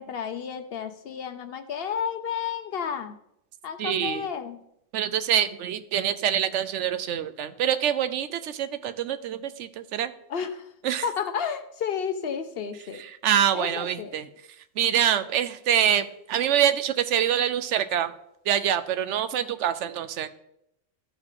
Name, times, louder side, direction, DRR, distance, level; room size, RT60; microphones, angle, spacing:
voice 1, 0.0-3.2 3.6-4.6 10.3-10.7 11.0-13.0 13.5-14.1, left 7 dB, 60° left, 9 dB, 0.8 m, -31 dB
voice 2, 3.8-4.2 4.9-10.1 10.8-11.0 13.1-14.3 14.8-18.1 18.5-20.3, right 10 dB, 75° right, 12 dB, 0.9 m, -25 dB
13.0 x 4.8 x 3.7 m, 0.76 s
omnidirectional pair, 1.2 m